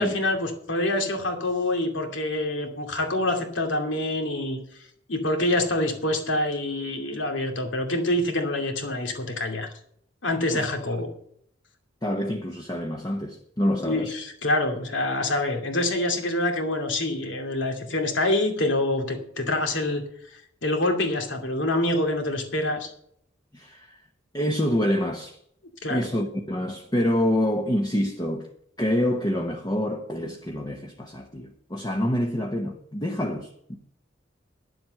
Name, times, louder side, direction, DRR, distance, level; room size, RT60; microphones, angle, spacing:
voice 1, 0.0-4.6 5.1-9.7 10.2-11.1 13.8-20.0 20.3-22.9 25.8-26.0, left 1 dB, 75° left, 2.5 m, -26 dB
voice 2, 12.0-14.1 23.5-24.0 24.3-25.4 25.9-28.5 28.8-33.8, equal, 20° left, 1.0 m, -26 dB
10.5 x 7.8 x 7.6 m
head